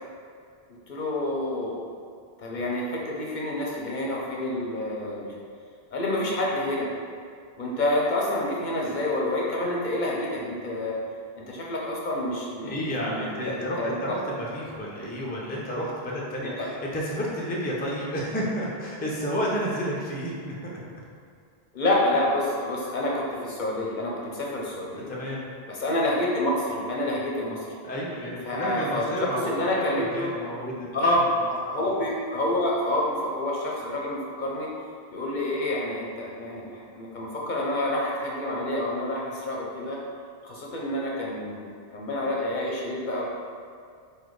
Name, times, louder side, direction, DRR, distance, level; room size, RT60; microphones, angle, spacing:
voice 1, 0.9-1.8 2.4-5.3 5.9-6.9 7.6-11.0 11.4-14.2 16.6-16.7 21.7-25.1 25.7-27.8 28.4-30.3 30.9-31.2 31.5-34.7 35.1-40.0 40.4-43.3, left 1 dB, 55° left, -4 dB, 0.7 m, -28 dB
voice 2, 12.6-20.7 25.1-25.5 27.8-29.5 30.0-31.0, equal, 10° left, -4 dB, 0.5 m, -31 dB
4.1 x 2.6 x 4.7 m, 2.2 s
omnidirectional pair, 1.0 m